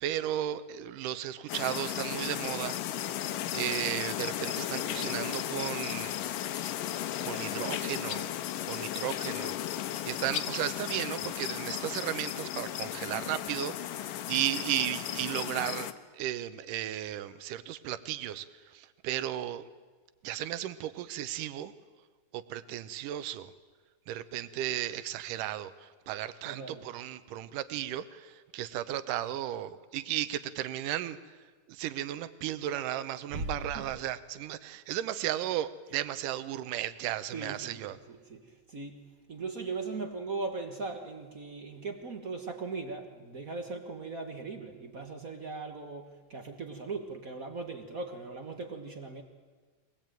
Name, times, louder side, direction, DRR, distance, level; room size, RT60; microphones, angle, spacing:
voice 1, 0.0-2.8 3.5-6.2 7.2-8.3 8.7-19.6 20.2-21.7 22.3-23.5 24.1-31.4 31.7-38.0, right 12 dB, 80° right, 14 dB, 2.4 m, -35 dB
sound 1, 1.5-15.9, left 12 dB, 85° left, 2.6 m, -35 dB
voice 2, 26.4-26.9 33.3-33.9 37.3-39.0 39.3-49.2, right 3 dB, 55° right, 5 dB, 0.9 m, -39 dB
23.5 x 19.5 x 9.1 m, 1.4 s
omnidirectional pair, 3.8 m